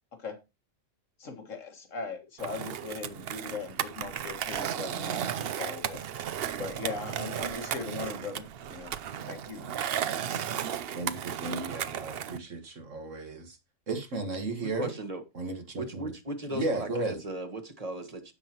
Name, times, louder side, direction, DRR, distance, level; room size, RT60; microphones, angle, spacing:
voice 1, 1.2-6.0 6.5-8.9 9.3-9.7, left 4 dB, 80° left, 2.0 m, -39 dB
Skateboard, 2.4-12.4, right 9 dB, 60° right, 0.8 m, -34 dB
voice 2, 10.9-13.6 13.9-14.9 15.3-16.1 16.5-17.2, right 2 dB, 75° right, 2.0 m, -34 dB
voice 3, 14.6-15.2 15.8-18.3, right 1 dB, 30° right, 1.4 m, -37 dB
15.5 x 5.5 x 2.9 m
omnidirectional pair, 1.3 m